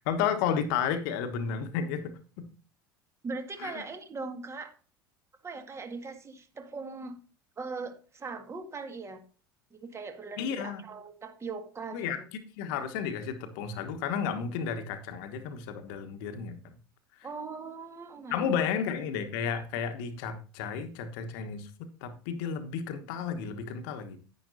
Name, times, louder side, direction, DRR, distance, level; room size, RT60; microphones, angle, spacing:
voice 1, 0.0-2.5 3.6-3.7 10.4-10.8 11.9-12.2 12.6-16.6 18.3-21.7 22.0-24.2, left 7 dB, 60° left, 9 dB, 1.4 m, -32 dB
voice 2, 3.2-4.7 5.4-7.2 7.6-9.2 9.7-12.3 17.2-18.7, right 4 dB, 20° right, 6 dB, 1.9 m, -40 dB
10.5 x 9.9 x 2.7 m, 0.37 s
figure-of-eight pair, 75°, 12 cm